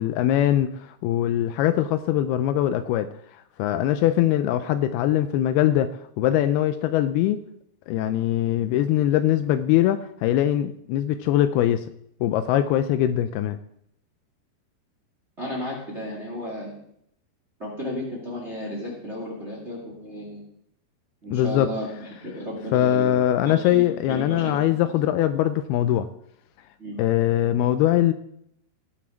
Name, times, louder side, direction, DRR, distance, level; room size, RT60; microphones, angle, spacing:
voice 1, 0.0-3.1 3.6-7.4 7.9-11.9 12.2-13.6 21.3-21.7 22.7-26.1 27.0-28.1, left 12 dB, 85° left, 11 dB, 2.4 m, -22 dB
voice 2, 15.4-16.8 17.6-20.4 21.2-23.1 23.4-24.6 26.8-27.0, left 1 dB, 25° right, -2 dB, 1.8 m, -33 dB
18.0 x 6.2 x 4.6 m, 0.73 s
omnidirectional pair, 4.7 m